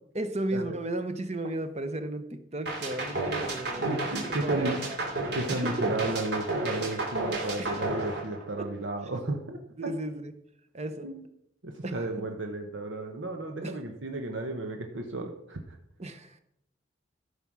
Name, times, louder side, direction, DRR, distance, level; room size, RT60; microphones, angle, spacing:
voice 1, 0.1-4.0 4.3-5.0 5.3-5.4 7.6-7.8 8.6-8.7 9.0-9.1 9.8-10.3 10.7-11.1 11.8-12.1 13.6-13.8 16.0-16.4, right 1 dB, 35° right, 9 dB, 0.9 m, -34 dB
sound 1, 2.7-8.9, right 2 dB, 60° right, 2.8 m, -32 dB
voice 2, 3.8-4.8 5.3-9.6 11.0-11.2 11.6-15.8, right 2 dB, 75° right, 4 dB, 1.1 m, -33 dB
13.0 x 5.8 x 6.2 m, 0.79 s
head